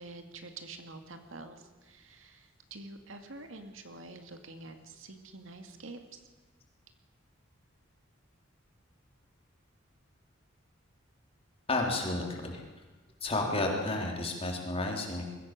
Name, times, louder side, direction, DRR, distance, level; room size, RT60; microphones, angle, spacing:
voice 1, 0.0-6.2, right 3 dB, 75° right, 6 dB, 2.2 m, -47 dB
voice 2, 11.7-12.7 13.2-15.2, left 2 dB, 30° left, 1 dB, 3.8 m, -31 dB
22.5 x 15.5 x 7.6 m, 1.2 s
head